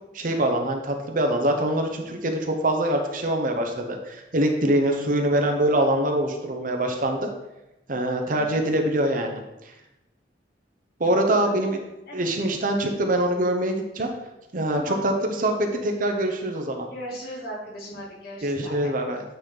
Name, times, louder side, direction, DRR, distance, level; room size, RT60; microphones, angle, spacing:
voice 1, 0.1-7.3 7.9-9.4 11.0-11.8 12.1-14.1 14.5-16.9 18.4-19.2, right 1 dB, 45° right, 3 dB, 0.9 m, -24 dB
voice 2, 8.3-8.7 11.0-11.6 12.1-12.3 14.7-15.0 16.9-18.9, equal, 55° left, -6 dB, 2.6 m, -38 dB
9.2 x 4.2 x 3.9 m, 0.96 s
head